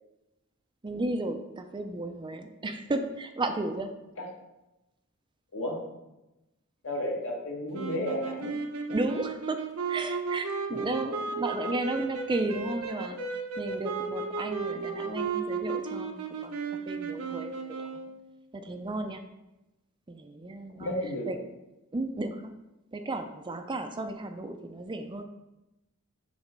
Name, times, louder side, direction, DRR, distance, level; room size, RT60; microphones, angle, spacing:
voice 1, 0.8-3.9 8.9-9.6 9.9-13.2 13.6-17.9 18.5-19.2 20.1-20.9 21.3-21.4 21.9-22.5 22.9-25.2, right 2 dB, 20° right, 6 dB, 0.5 m, -34 dB
voice 2, 6.8-8.5 10.7-11.0 20.8-21.3, left 1 dB, 65° left, -1 dB, 1.7 m, -33 dB
sound 1, 7.7-18.2, right 4 dB, 85° right, 0.9 m, -34 dB
7.2 x 4.4 x 5.1 m, 0.97 s
head